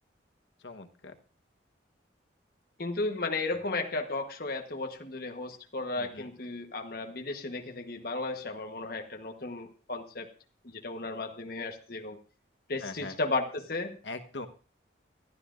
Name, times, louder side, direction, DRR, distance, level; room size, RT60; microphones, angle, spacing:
voice 1, 0.6-1.2 3.5-3.6 5.9-6.3 12.8-13.2 14.0-14.5, left 2 dB, 75° left, 7 dB, 1.2 m, -42 dB
voice 2, 2.8-10.3 10.6-12.2 12.7-14.0, left 3 dB, 50° left, 4 dB, 1.2 m, -34 dB
22.0 x 12.5 x 2.6 m, 0.36 s
head